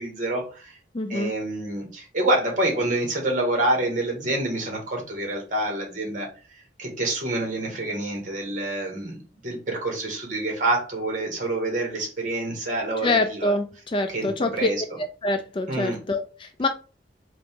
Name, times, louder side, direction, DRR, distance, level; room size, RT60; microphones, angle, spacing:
voice 1, 0.0-0.8 1.1-6.3 6.8-13.5 14.1-14.8 15.7-16.0, right 2 dB, 45° right, 1.6 m, -27 dB
voice 2, 0.9-1.3 13.0-14.7 15.2-16.7, left 2 dB, 30° left, 0.4 m, -25 dB
3.9 x 2.9 x 3.5 m
head